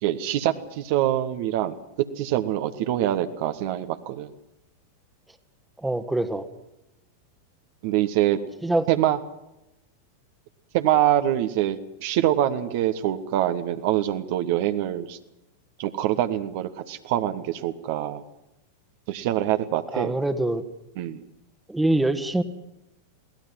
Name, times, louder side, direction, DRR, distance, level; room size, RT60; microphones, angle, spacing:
voice 1, 0.0-4.3 7.8-8.4 8.9-9.2 10.7-15.2 15.8-18.2 19.1-20.2 21.0-21.2, right 12 dB, 50° right, 9 dB, 1.3 m, -25 dB
voice 2, 5.8-6.5 8.6-8.9 19.9-20.6 21.7-22.4, right 1 dB, 5° right, 10 dB, 1.6 m, -24 dB
22.5 x 18.0 x 7.6 m, 0.88 s
figure-of-eight pair, 90°, 0 cm